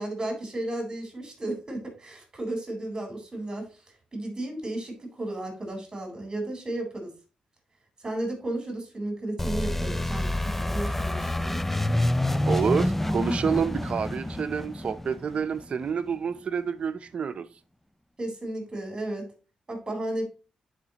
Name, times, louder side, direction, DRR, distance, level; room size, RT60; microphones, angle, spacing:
voice 1, 0.0-3.7 4.1-7.1 8.0-11.6 18.2-19.3 19.7-20.2, right 1 dB, 30° right, 4.1 m, -34 dB
sound 1, 9.4-16.0, left 1 dB, 10° left, 0.4 m, -27 dB
voice 2, 12.5-17.5, right 6 dB, 55° right, 0.6 m, -28 dB
10.5 x 5.1 x 2.9 m
cardioid pair, 85°, 2 cm